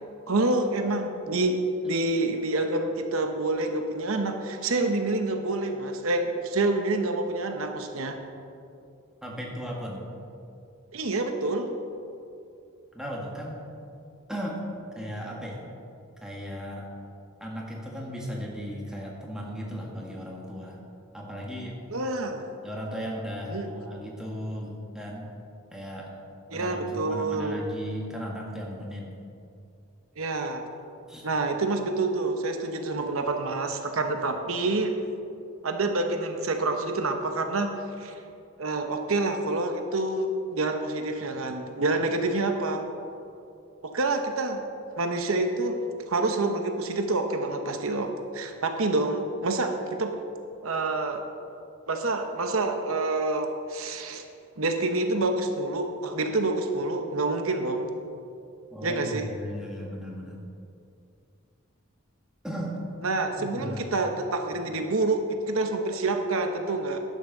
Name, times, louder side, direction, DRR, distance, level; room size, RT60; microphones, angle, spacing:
voice 1, 0.3-1.6 1.8-8.2 10.9-11.7 21.9-22.4 23.5-23.7 26.5-27.6 30.2-30.6 31.2-35.0 35.6-38.2 38.6-42.8 43.8-44.6 45.0-45.8 46.1-50.1 50.6-51.2 51.9-54.2 54.6-57.9 58.8-59.3 63.0-67.0, right 2 dB, 75° right, 5 dB, 0.9 m, -27 dB
voice 2, 9.2-10.1 12.9-13.6 14.3-14.6 14.9-15.6 16.2-16.9 17.4-20.8 21.1-21.8 22.6-25.3 25.7-26.1 26.5-29.1 31.1-31.2 58.7-60.4 62.4-62.8 63.4-64.0, equal, 5° right, -3 dB, 1.5 m, -36 dB
11.0 x 6.6 x 6.6 m, 2.5 s
head